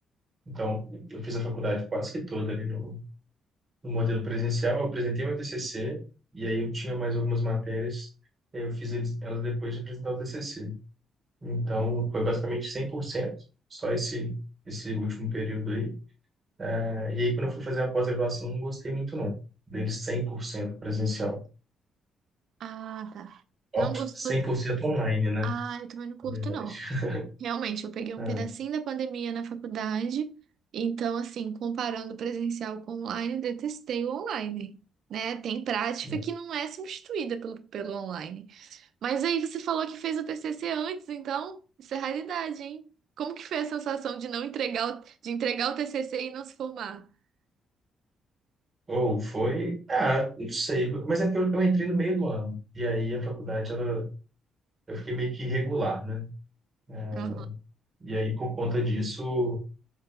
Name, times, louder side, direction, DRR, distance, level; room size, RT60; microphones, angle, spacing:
voice 1, 0.5-3.0 3.8-6.0 6.3-8.1 8.5-10.7 11.4-13.3 13.7-14.4 14.6-15.9 16.6-19.3 19.7-21.4 23.7-25.5 26.2-27.3 28.2-28.5 36.0-36.2 48.9-54.1 54.9-56.3 56.9-57.5 58.0-59.6, equal, 30° right, 1.4 m, -29 dB
voice 2, 22.6-23.4 23.8-24.4 25.4-26.8 27.4-30.4 30.7-34.8 35.1-42.9 43.2-47.1 57.1-57.5, right 7 dB, 70° right, 0.4 m, -32 dB
4.7 x 2.8 x 2.3 m
cardioid pair, 90°, 0 cm